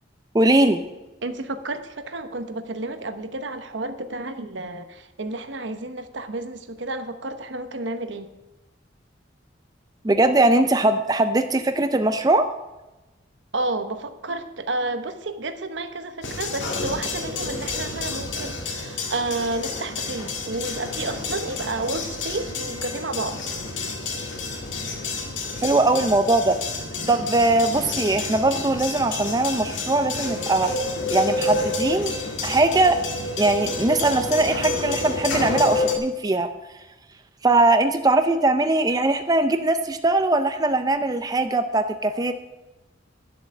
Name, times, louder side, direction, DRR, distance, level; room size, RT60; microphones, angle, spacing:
voice 1, 0.3-0.8 10.0-12.5 25.6-26.6 27.1-30.7 31.1-32.1 32.4-33.0 33.4-36.5 37.4-42.3, right 2 dB, 20° right, 8 dB, 0.5 m, -20 dB
voice 2, 1.2-8.3 13.5-23.4, right 2 dB, 75° right, 9 dB, 1.0 m, -31 dB
sound 1, 16.2-36.0, left 3 dB, 80° left, 2.0 m, -29 dB
11.0 x 7.1 x 7.7 m, 1.1 s
head